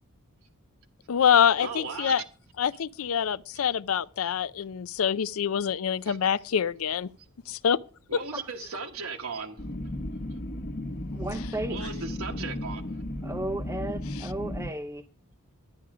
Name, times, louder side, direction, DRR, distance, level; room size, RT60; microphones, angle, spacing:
voice 1, 1.1-2.2 2.6-7.1 7.5-7.8 8.1-8.2 14.1-14.3, left 8 dB, 70° left, 0.4 m, -25 dB
voice 2, 1.6-2.1 6.0-6.2 8.1-9.6 11.7-12.8, right 4 dB, 75° right, 1.2 m, -36 dB
sound 1, 9.6-14.7, left 1 dB, 45° left, 1.0 m, -35 dB
voice 3, 11.1-11.8 13.2-15.0, right 1 dB, 10° right, 0.5 m, -34 dB
11.5 x 10.0 x 4.8 m
head